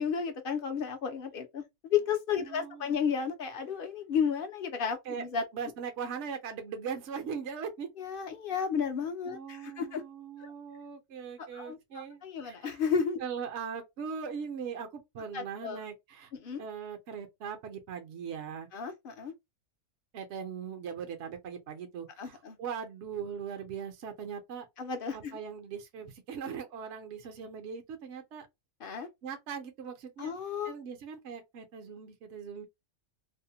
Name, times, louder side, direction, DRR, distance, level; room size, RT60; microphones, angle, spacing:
voice 1, 0.0-5.4 8.0-10.0 10.4-10.5 11.4-13.2 15.3-15.8 16.4-16.6 18.7-19.3 22.2-22.6 24.8-25.4 28.8-29.1 30.2-30.7, left 6 dB, 55° left, 0.7 m, -33 dB
voice 2, 2.5-3.0 5.1-5.3 5.5-7.9 9.3-12.8 13.2-16.3 16.6-18.7 20.1-24.6 25.1-28.5 29.2-30.3 30.6-32.7, right 7 dB, 65° right, 0.9 m, -40 dB
2.7 x 2.1 x 2.7 m
omnidirectional pair, 1.3 m